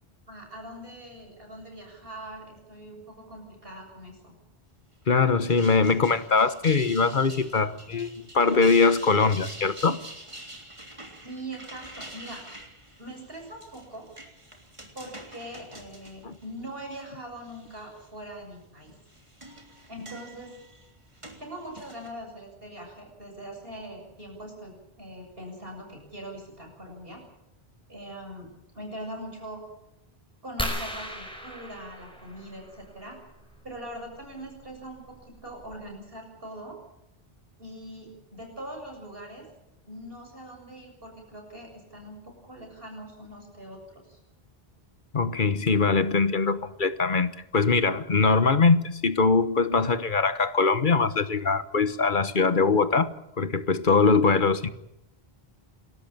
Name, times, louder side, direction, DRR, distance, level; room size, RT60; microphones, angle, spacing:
voice 1, 0.3-4.3 11.2-12.4 13.0-14.1 14.9-18.9 19.9-20.6 21.4-27.3 27.9-29.6 30.4-33.2 33.6-36.8 37.6-39.5 39.9-44.2, right 1 dB, 65° right, 2 dB, 7.7 m, -42 dB
voice 2, 5.1-8.1 8.3-10.0 16.2-16.4 45.1-53.1 53.4-54.7, left 4 dB, 55° left, 13 dB, 1.3 m, -22 dB
sound 1, 5.3-17.0 17.5-18.1 18.9-22.1, right 1 dB, 30° right, 3.4 m, -46 dB
sound 2, 30.6-33.0 34.6-34.7 35.3-35.4 35.7-35.9, equal, 5° left, 5.0 m, -35 dB
29.0 x 13.5 x 8.9 m, 0.85 s
omnidirectional pair, 1.0 m